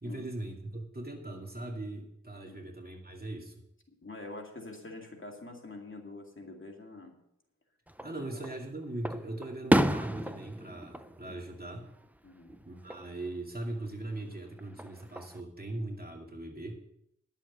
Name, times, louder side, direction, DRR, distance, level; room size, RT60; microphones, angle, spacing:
voice 1, 0.0-3.6 8.0-11.9 12.6-16.8, right 2 dB, 30° right, 1 dB, 2.4 m, -40 dB
voice 2, 4.0-7.1 8.2-8.5 12.2-12.5, left 2 dB, 45° left, 1 dB, 2.3 m, -45 dB
Fireworks, 7.9-8.6 9.0-12.2 12.5-13.1 14.6-15.4, right 1 dB, 5° right, 0.5 m, -31 dB
11.0 x 7.3 x 6.6 m, 0.78 s
wide cardioid pair, 55°, 29 cm